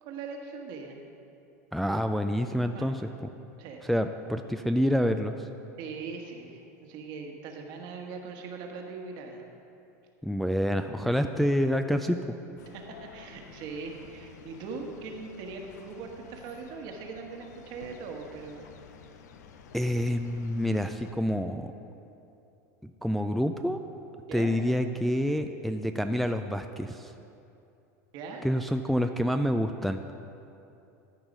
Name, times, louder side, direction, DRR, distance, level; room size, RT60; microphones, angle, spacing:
voice 1, 0.0-1.0 2.7-3.0 3.6-3.8 5.8-9.4 12.7-18.7 24.3-24.5 28.1-28.5, right 4 dB, 55° right, 2 dB, 1.3 m, -40 dB
voice 2, 1.7-3.1 3.8-5.5 10.2-12.3 19.7-21.7 22.8-23.8 24.3-27.1 28.4-30.0, equal, ahead, 6 dB, 0.3 m, -27 dB
sound 1, 12.6-21.1, left 6 dB, 80° left, 0.6 m, -51 dB
12.5 x 4.6 x 5.3 m, 2.7 s
hypercardioid pair, 100°, 9 cm